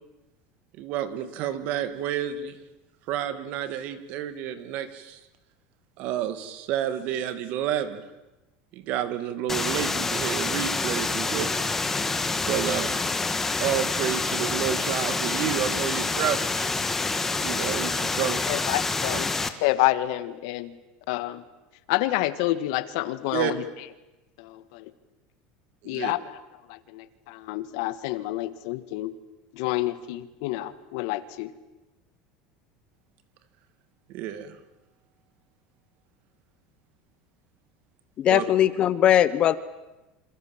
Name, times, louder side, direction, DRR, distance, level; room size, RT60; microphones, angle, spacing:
voice 1, 0.8-2.6 3.1-5.2 6.0-8.0 8.7-11.5 12.5-13.0 13.6-16.7 17.4-18.4 23.3-23.5 25.8-26.1 34.1-34.6 38.3-38.4, right 10 dB, 50° right, 11 dB, 2.5 m, -30 dB
sound 1, 9.5-19.5, left 3 dB, 10° left, 1.6 m, -27 dB
voice 2, 18.5-19.3 19.6-20.7 21.1-21.4 21.9-23.6 24.4-24.9 25.8-26.3 26.7-29.1 29.5-31.5, left 16 dB, 70° left, 13 dB, 1.8 m, -28 dB
voice 3, 38.2-39.6, left 11 dB, 30° left, 16 dB, 1.0 m, -20 dB
28.0 x 27.0 x 7.5 m, 1.0 s
cardioid pair, 165°, 3 cm